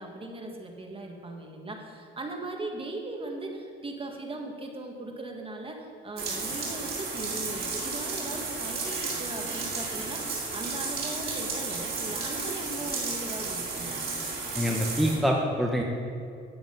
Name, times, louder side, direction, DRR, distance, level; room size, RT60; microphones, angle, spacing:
voice 1, 0.0-14.0, right 2 dB, 25° right, 2 dB, 1.7 m, -39 dB
sound 1, 6.2-15.1, right 3 dB, 50° right, 2.7 m, -33 dB
voice 2, 14.5-15.8, equal, ahead, -1 dB, 1.0 m, -25 dB
9.9 x 7.7 x 5.3 m, 2.4 s
cardioid pair, 90°, 20 cm